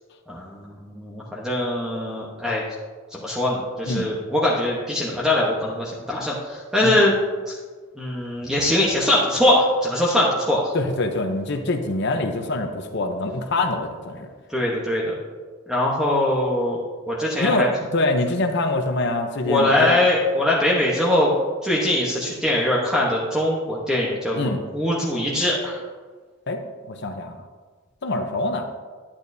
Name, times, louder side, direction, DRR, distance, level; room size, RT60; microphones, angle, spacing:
voice 1, 0.3-2.6 3.1-7.1 7.5-7.6 8.0-10.7 14.5-15.1 15.7-16.8 17.1-17.7 19.5-21.4 21.6-25.8, left 1 dB, 5° right, -4 dB, 1.0 m, -22 dB
voice 2, 10.7-14.3 17.4-19.9 24.4-24.6 26.5-26.6 26.9-27.4 28.0-28.7, left 2 dB, 55° left, 4 dB, 0.7 m, -24 dB
11.5 x 8.5 x 2.7 m, 1.4 s
head